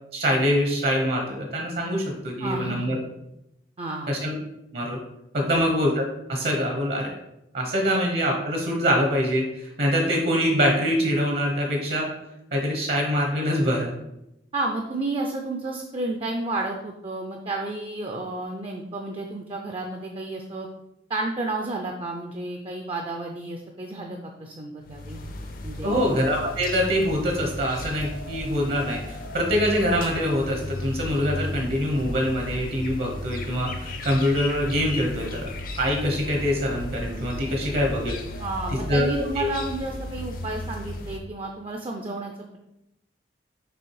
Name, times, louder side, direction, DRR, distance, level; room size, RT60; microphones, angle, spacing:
voice 1, 0.1-3.0 4.1-4.4 4.7-5.0 5.3-5.9 6.3-7.1 7.5-12.1 12.5-13.9 25.8-35.5 35.8-38.2 38.7-39.1 39.4-39.5, equal, 60° right, 1 dB, 1.0 m, -24 dB
voice 2, 2.4-2.9 3.8-4.1 5.5-5.7 7.7-7.8 14.5-20.7 21.1-25.2 25.6-26.1 38.4-42.6, right 2 dB, 30° right, 2 dB, 0.5 m, -31 dB
sound 1, 24.8-41.2, left 1 dB, 50° left, 0.7 m, -35 dB
6.1 x 3.3 x 4.7 m, 0.86 s
head